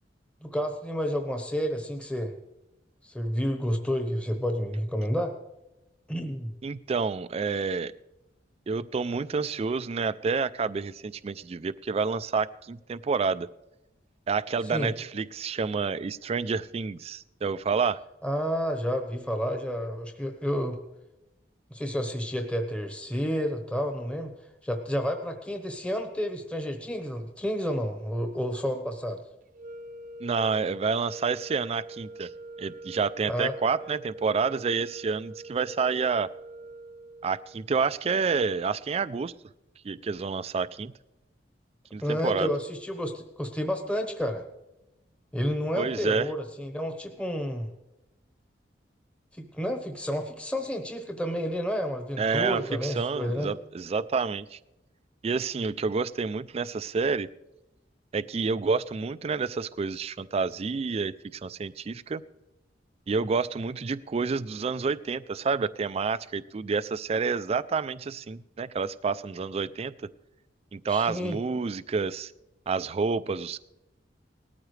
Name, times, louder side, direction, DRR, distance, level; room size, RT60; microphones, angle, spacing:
voice 1, 0.4-2.3 3.0-5.3 6.1-6.5 14.7-14.9 18.2-20.8 21.7-24.3 24.6-29.2 33.3-33.5 42.0-44.4 45.3-47.7 49.3-53.5 70.9-71.4, equal, 5° left, 5 dB, 1.1 m, -30 dB
voice 2, 6.6-7.9 8.7-13.5 14.3-18.0 30.2-32.3 32.6-36.3 37.2-39.3 39.8-40.9 41.9-42.5 45.8-46.3 52.2-54.6 55.2-57.3 58.1-62.2 63.1-69.9 70.7-72.3 72.7-73.6, right 5 dB, 35° right, 15 dB, 0.4 m, -29 dB
sound 1, 29.5-37.7, right 2 dB, 50° right, 0.8 m, -44 dB
18.5 x 13.5 x 3.2 m, 0.93 s
head